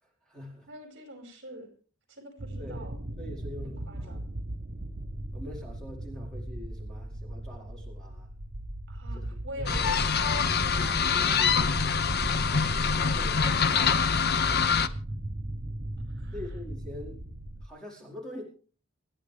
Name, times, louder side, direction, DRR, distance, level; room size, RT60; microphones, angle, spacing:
voice 1, 0.0-0.7 2.6-2.9 3.2-4.2 5.3-8.3 9.1-9.7 12.8-13.5 14.8-15.0 16.3-18.4, left 1 dB, 5° left, -3 dB, 4.5 m, -44 dB
voice 2, 0.7-1.7 2.1-3.0 3.6-4.2 8.9-12.4 13.0-14.7 16.1-16.4, right 1 dB, 60° right, 4 dB, 5.2 m, -46 dB
sound 1, 2.4-17.7, right 1 dB, 40° right, 0.9 m, -37 dB
sound 2, 9.7-14.9, left 6 dB, 50° left, 0.8 m, -25 dB
28.5 x 10.0 x 3.4 m, 0.38 s
head